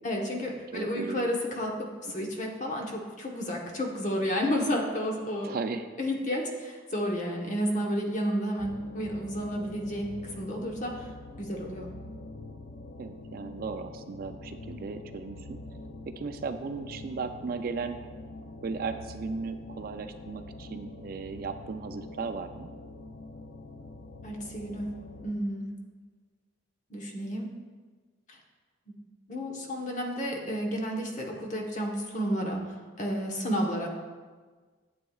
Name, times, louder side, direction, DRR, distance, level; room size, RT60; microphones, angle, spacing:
voice 1, 0.0-5.5 6.0-11.1 11.4-11.9 24.2-24.9 25.2-25.7 26.9-27.5 28.3-28.4 29.3-33.9, equal, 40° left, 0 dB, 1.1 m, -31 dB
voice 2, 0.7-1.3 2.1-2.3 5.4-5.9 13.0-15.6 16.1-18.0 18.6-22.7, right 4 dB, 45° right, 8 dB, 0.3 m, -36 dB
sound 1, 8.6-25.3, left 2 dB, 55° left, 0.4 m, -45 dB
11.0 x 7.6 x 2.4 m, 1.4 s
head